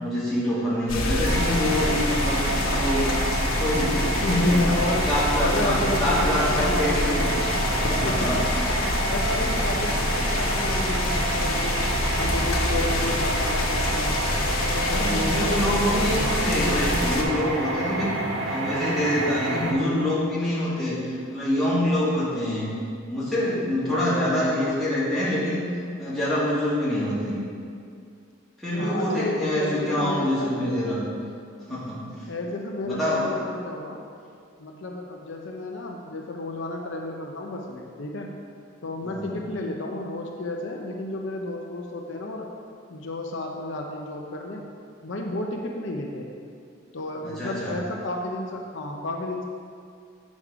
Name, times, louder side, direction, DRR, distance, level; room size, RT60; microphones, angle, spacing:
voice 1, 0.0-2.4 2.7-3.2 3.6-4.6 5.1-7.4 7.7-8.4 8.7-9.0 14.9-18.1 18.5-22.7 23.1-25.6 26.0-27.4 28.6-31.0 31.7-32.0 32.8-33.4 39.0-39.4 47.2-47.8, left 1 dB, ahead, -11 dB, 2.3 m, -26 dB
sound 1, 0.9-17.2, left 1 dB, 85° left, 1.2 m, -26 dB
sound 2, 1.2-19.7, right 2 dB, 70° right, 0.9 m, -29 dB
voice 2, 4.0-5.1 5.4-7.3 8.0-8.2 8.8-11.9 12.2-14.2 14.6-16.4 24.1-24.7 28.8-30.7 31.7-31.9 32.3-34.0 34.6-38.3 38.8-42.5 42.9-44.7 45.0-46.3 46.9-49.4, left 2 dB, 65° left, 0 dB, 0.7 m, -32 dB
8.3 x 6.3 x 5.0 m, 2.3 s
head